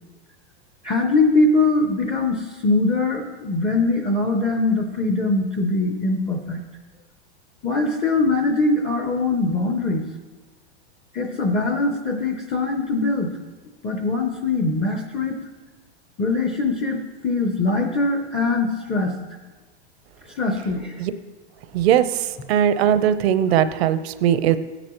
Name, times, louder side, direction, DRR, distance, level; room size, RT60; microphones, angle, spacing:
voice 1, 0.8-6.6 7.6-10.0 11.1-13.3 13.8-15.4 16.2-19.1 20.3-21.0 23.6-23.7, left 3 dB, 15° left, 4 dB, 0.5 m, -22 dB
voice 2, 22.5-24.6, right 10 dB, 65° right, 12 dB, 0.7 m, -19 dB
16.0 x 10.0 x 3.0 m, 1.3 s
supercardioid pair, 150°, 34 cm